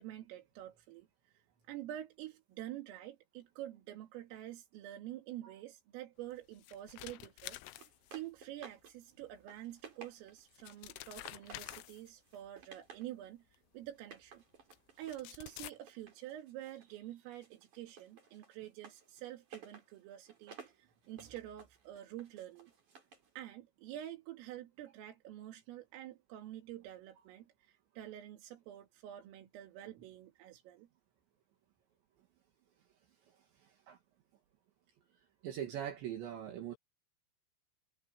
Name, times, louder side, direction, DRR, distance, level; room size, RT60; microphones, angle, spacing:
voice 1, 0.0-14.4 15.0-22.7 23.4-30.9, right 13 dB, 90° right, 4.9 m, -48 dB
sound 1, 6.3-8.4 9.8-9.9 10.4-12.4 13.5-13.6 14.7-14.8 15.0-15.7, left 17 dB, 80° left, 3.4 m, -49 dB
sound 2, 7.8-8.9 9.3-10.5 11.0-11.9 12.3-13.1 14.0-17.0 17.3-23.3, right 5 dB, 40° right, 5.9 m, -56 dB
voice 2, 33.6-34.0 35.4-36.8, right 10 dB, 65° right, 4.2 m, -42 dB
omnidirectional pair, 5.8 m